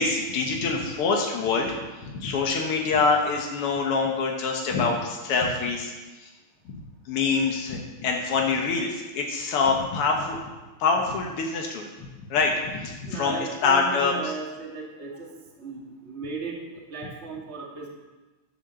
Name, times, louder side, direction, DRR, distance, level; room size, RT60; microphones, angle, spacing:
voice 1, 0.0-1.8 2.0-5.9 6.2-6.3 6.7-10.4 10.8-14.3, left 4 dB, 85° left, 0 dB, 2.2 m, -25 dB
voice 2, 13.1-15.1 15.6-16.6 16.9-17.9, right 4 dB, 30° right, -1 dB, 2.0 m, -36 dB
11.5 x 7.1 x 6.9 m, 1.2 s
omnidirectional pair, 2.4 m